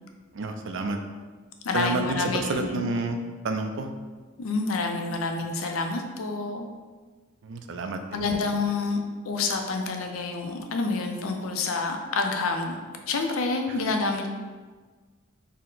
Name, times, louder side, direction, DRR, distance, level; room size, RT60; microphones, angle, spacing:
voice 1, 0.3-1.0 1.7-3.2 3.4-3.9 7.4-8.4 13.7-13.8, right 3 dB, 65° right, 5 dB, 0.4 m, -30 dB
voice 2, 1.6-2.9 4.4-6.7 8.1-9.0 9.2-12.8 13.1-14.3, left 3 dB, 90° left, 4 dB, 0.5 m, -28 dB
4.3 x 2.1 x 3.8 m, 1.4 s
head